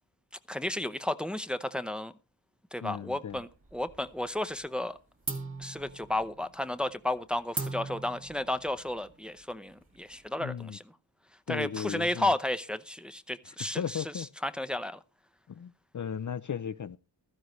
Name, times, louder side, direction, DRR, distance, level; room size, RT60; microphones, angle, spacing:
voice 1, 0.5-2.1 2.7-5.0 5.6-10.8 11.5-15.0, left 1 dB, ahead, 0.7 m, -33 dB
voice 2, 2.8-3.4 10.4-10.8 11.5-12.3 13.7-14.3 15.5-17.0, left 8 dB, 45° left, 0.5 m, -36 dB
sound 1, 3.3-4.2 4.5-4.9 5.2-10.4, right 3 dB, 30° right, 2.3 m, -41 dB
15.5 x 13.0 x 3.1 m
wide cardioid pair, 90°, 42 cm